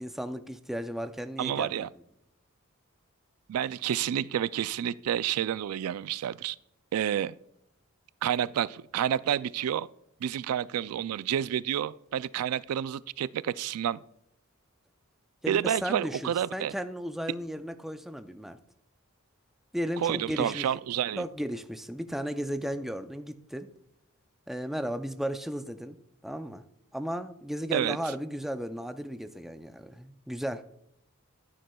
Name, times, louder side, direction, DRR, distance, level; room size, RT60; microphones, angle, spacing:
voice 1, 0.0-1.9 15.4-18.6 19.7-20.7 21.2-23.7 24.5-26.0 26.2-26.6 26.9-30.6, equal, ahead, 9 dB, 0.4 m, -35 dB
voice 2, 1.4-1.9 3.5-6.6 6.9-7.4 8.2-9.9 10.2-14.0 15.5-16.7 20.0-21.2 27.7-28.0, right 10 dB, 85° right, 18 dB, 0.3 m, -29 dB
14.0 x 9.3 x 2.3 m, 0.75 s
head